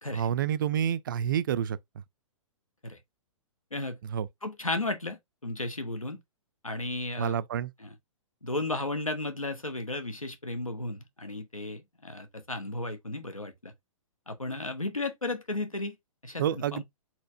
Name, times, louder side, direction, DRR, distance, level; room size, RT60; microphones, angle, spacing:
voice 1, 0.1-1.8 4.0-4.3 7.2-7.7 16.4-16.8, right 9 dB, 40° right, 0.3 m, -28 dB
voice 2, 4.4-6.2 6.6-7.4 7.8-7.9 8.4-13.7 14.3-16.0 16.2-16.8, left 2 dB, 85° left, 1.1 m, -34 dB
4.4 x 4.3 x 2.5 m
figure-of-eight pair, 120°, 17 cm